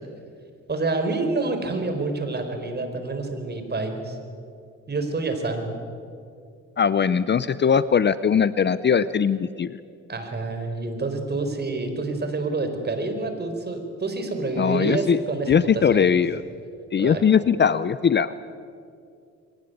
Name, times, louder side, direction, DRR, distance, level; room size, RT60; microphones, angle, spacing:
voice 1, 0.7-4.2 4.9-5.8 10.1-16.1 17.0-17.2, right 3 dB, 35° right, 6 dB, 4.4 m, -28 dB
voice 2, 6.8-9.8 14.6-15.2 15.5-16.4 16.9-18.3, left 7 dB, 35° left, 15 dB, 0.7 m, -20 dB
23.0 x 18.5 x 9.3 m, 2.4 s
cardioid pair, 90°, 30 cm